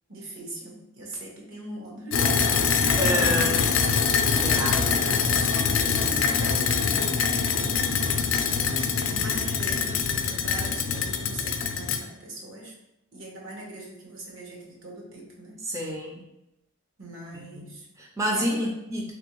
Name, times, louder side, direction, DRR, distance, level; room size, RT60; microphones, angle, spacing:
voice 1, 0.1-2.4 2.7-3.8 4.5-7.9 9.1-12.7 13.1-15.6 17.0-17.9 18.3-18.7, right 1 dB, 75° right, -1 dB, 1.0 m, -41 dB
sound 1, 2.1-12.0, left 6 dB, 75° left, 0.4 m, -24 dB
voice 2, 3.0-3.7 4.4-4.8 15.6-16.2 17.5-17.7 18.0-19.1, equal, 15° right, 0 dB, 0.3 m, -28 dB
3.4 x 3.0 x 2.9 m, 0.89 s
head